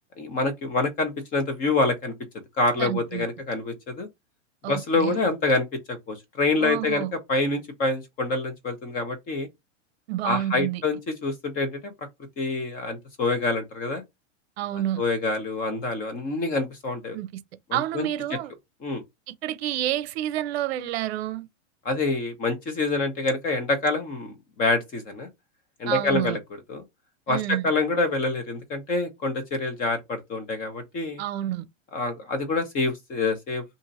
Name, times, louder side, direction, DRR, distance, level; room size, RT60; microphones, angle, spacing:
voice 1, 0.2-2.1 2.6-4.1 4.7-9.5 10.2-11.9 12.4-14.0 15.0-17.2 17.7-18.4 18.8-19.0 21.8-25.3 25.8-26.4 26.7-26.8 27.3-31.2 31.9-33.6, left 3 dB, 20° left, 0.8 m, -26 dB
voice 2, 2.8-3.3 4.6-5.2 6.6-7.1 10.1-10.8 14.6-15.0 17.1-17.4 17.7-18.5 19.3-21.5 25.9-26.4 27.3-27.7 31.2-31.7, right 13 dB, 55° right, 0.7 m, -29 dB
2.8 x 2.6 x 4.0 m
supercardioid pair, 160°, 37 cm